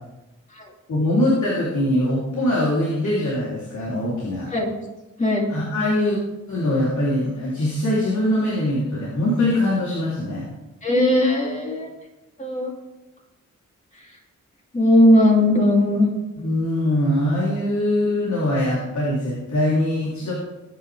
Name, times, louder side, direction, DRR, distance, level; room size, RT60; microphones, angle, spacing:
voice 1, 0.9-4.5 5.5-6.2 6.5-10.5 16.4-20.3, left 1 dB, 65° left, -6 dB, 3.4 m, -22 dB
voice 2, 10.8-11.9 12.4-12.7 14.7-16.1, left 1 dB, 25° left, -1 dB, 2.9 m, -17 dB
20.5 x 9.7 x 3.5 m, 1.0 s
wide cardioid pair, 135°, 31 cm